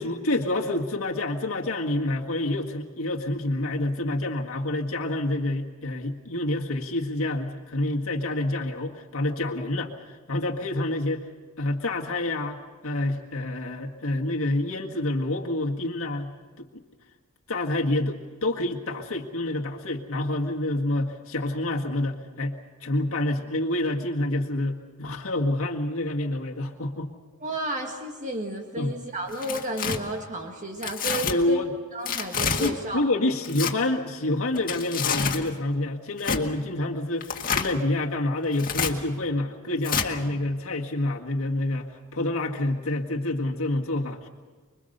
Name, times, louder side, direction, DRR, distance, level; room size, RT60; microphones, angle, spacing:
voice 1, 0.0-11.3 11.6-12.6 12.8-16.7 17.5-27.1 28.8-29.0 31.3-31.7 32.4-44.3, left 1 dB, 65° left, 1 dB, 1.8 m, -28 dB
voice 2, 27.4-31.6 31.9-33.0 40.1-40.4, right 1 dB, 35° right, 2 dB, 1.8 m, -32 dB
Tearing, 29.3-30.0 30.8-31.3 32.1-32.7 33.4-33.7 34.6-35.4 36.2-36.4 37.2-37.7 38.5-38.9 39.8-40.1, left 6 dB, 40° left, 1.9 m, -28 dB
25.5 x 23.0 x 6.7 m, 1.4 s
head